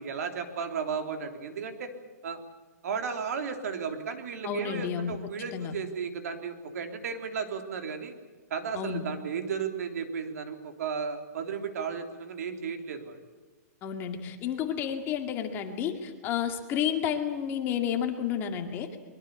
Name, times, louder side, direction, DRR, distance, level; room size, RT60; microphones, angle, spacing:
voice 1, 0.0-1.9 2.2-2.4 2.8-8.1 8.5-13.2, right 6 dB, 65° right, 6 dB, 3.6 m, -34 dB
voice 2, 4.4-5.2 5.5-5.7 8.7-9.0 13.8-19.0, left 8 dB, 25° left, 5 dB, 2.2 m, -31 dB
23.5 x 22.5 x 8.4 m, 1.3 s
hypercardioid pair, 160°, 9 cm